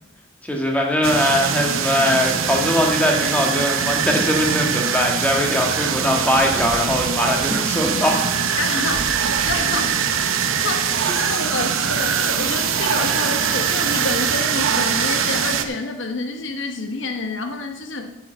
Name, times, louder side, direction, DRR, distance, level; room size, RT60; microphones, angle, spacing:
voice 1, 0.4-8.2 11.0-11.1, left 1 dB, 5° left, 0 dB, 1.5 m, -21 dB
sound 1, 1.0-15.6, right 7 dB, 80° right, 0.8 m, -22 dB
voice 2, 8.6-10.3 10.6-18.1, left 3 dB, 65° left, 5 dB, 1.1 m, -28 dB
sound 2, 11.0-14.9, right 4 dB, 25° right, 1.9 m, -34 dB
7.4 x 7.2 x 8.0 m, 0.99 s
head